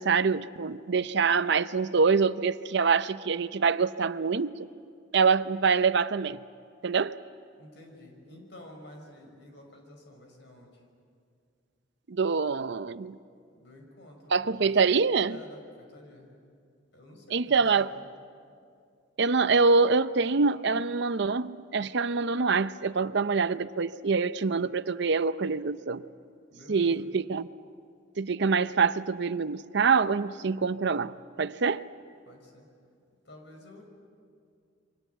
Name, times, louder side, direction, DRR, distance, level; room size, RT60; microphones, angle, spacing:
voice 1, 0.0-4.5 5.1-6.4 6.8-7.1 12.1-13.2 14.3-15.4 17.3-17.9 19.2-26.0 26.7-27.5 28.2-31.8, right 5 dB, 65° right, 14 dB, 0.6 m, -25 dB
voice 2, 7.6-10.8 13.5-14.7 15.2-16.4 16.9-18.1 26.5-27.1 32.3-32.7 33.2-33.8, left 1 dB, 65° left, 3 dB, 5.7 m, -51 dB
28.5 x 24.0 x 8.2 m, 2.3 s
head